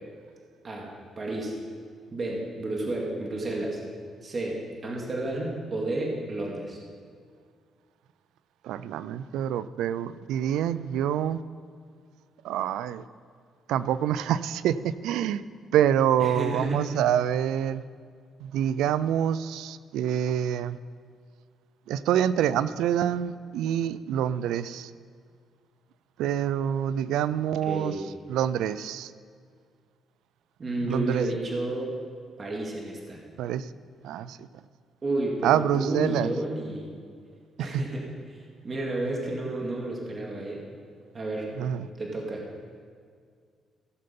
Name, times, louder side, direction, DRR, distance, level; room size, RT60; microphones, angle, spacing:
voice 1, 1.2-1.5 2.1-3.8 4.2-4.6 4.8-6.8 16.2-16.9 27.7-28.0 30.6-31.9 32.4-33.2 35.0-36.9 37.6-38.0 38.6-40.6 41.1-41.5 42.0-42.4, right 2 dB, 35° right, -1 dB, 2.2 m, -31 dB
voice 2, 8.6-11.4 12.4-13.1 13.7-15.4 15.7-17.8 18.4-20.8 21.9-24.9 26.2-28.0 28.3-29.1 30.8-31.3 33.4-33.7 34.0-34.5 35.4-36.3 37.6-37.8 41.6-41.9, right 10 dB, 90° right, 16 dB, 0.3 m, -26 dB
16.5 x 6.7 x 5.3 m, 2.1 s
cardioid pair, 90°, 0 cm